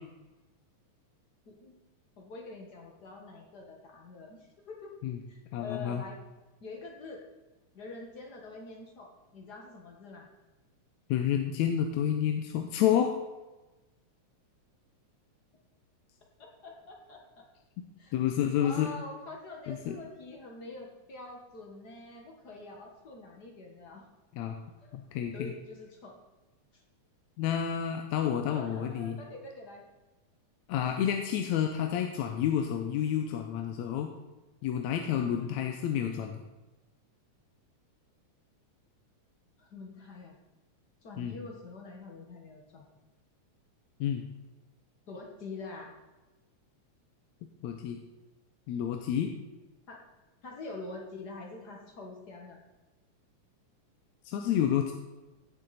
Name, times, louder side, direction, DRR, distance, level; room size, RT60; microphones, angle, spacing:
voice 1, 2.2-4.9 5.3-6.2 6.6-7.2 7.7-10.3 16.4-17.4 18.0-18.2 18.5-24.1 24.8-25.0 25.3-26.2 26.7-26.8 28.5-29.8 35.4-35.7 39.6-40.4 41.0-42.8 45.1-45.9 49.9-50.0 50.4-52.6, left 3 dB, 50° left, 1 dB, 1.3 m, -45 dB
voice 2, 5.5-6.0 11.1-13.1 18.1-18.9 19.7-20.0 24.3-24.6 24.9-25.5 27.4-29.2 30.7-34.1 34.6-36.4 41.2-41.4 44.0-44.2 47.6-48.0 48.7-49.3 54.3-54.9, left 9 dB, 75° left, 4 dB, 1.9 m, -29 dB
16.5 x 7.0 x 4.1 m, 1.1 s
omnidirectional pair, 3.5 m